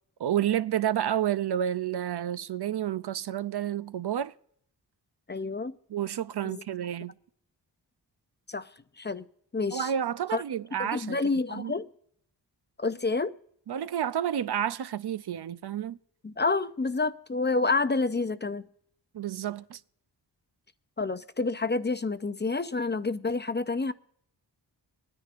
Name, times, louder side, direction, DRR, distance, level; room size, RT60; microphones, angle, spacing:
voice 1, 0.2-4.3 5.9-7.2 9.7-11.2 11.5-11.7 13.7-16.0 19.1-19.8, right 10 dB, 65° right, 0.6 m, -30 dB
voice 2, 5.3-5.7 6.4-6.6 8.5-8.7 9.0-9.3 9.5-9.9 10.3-10.4 10.7-11.9 12.8-13.4 16.2-18.7 21.0-23.9, left 3 dB, 25° left, 0.6 m, -29 dB
25.5 x 9.9 x 2.5 m
wide cardioid pair, 70°, 43 cm